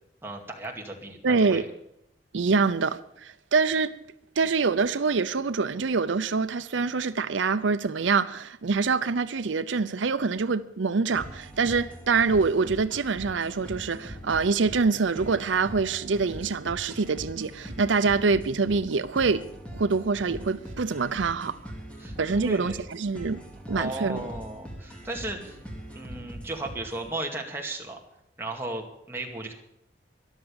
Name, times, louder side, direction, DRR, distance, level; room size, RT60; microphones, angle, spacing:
voice 1, 0.2-1.6 22.0-22.8 23.7-25.6 25.9-28.0 28.4-29.5, right 2 dB, 10° right, 2.2 m, -35 dB
voice 2, 1.2-1.7 2.3-3.9 4.4-19.4 19.7-21.7 22.2-23.4 23.7-24.3, right 4 dB, 90° right, 0.6 m, -25 dB
sound 1, 11.2-27.1, equal, 5° left, 2.5 m, -42 dB
13.5 x 11.5 x 7.1 m
head